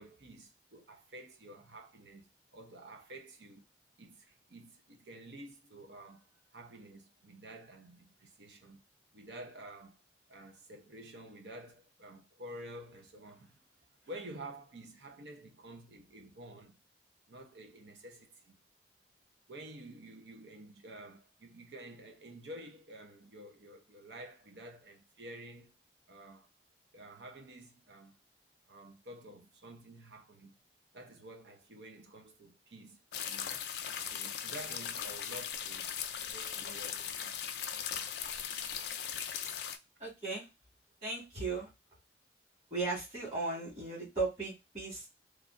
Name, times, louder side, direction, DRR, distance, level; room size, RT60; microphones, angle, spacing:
voice 1, 0.0-3.6 4.0-8.8 9.1-10.0 10.3-13.6 14.0-16.8 17.3-18.6 19.5-25.7 26.1-26.5 26.9-28.2 28.7-30.6 30.9-33.6 33.9-36.0 36.3-37.5 37.9-38.1, right 1 dB, 80° right, 0.8 m, -50 dB
sound 1, 33.1-39.8, left 8 dB, 70° left, 0.4 m, -39 dB
voice 2, 40.0-40.5 41.0-41.7 42.7-45.1, right 3 dB, 35° right, 1.9 m, -36 dB
3.2 x 2.4 x 2.5 m
head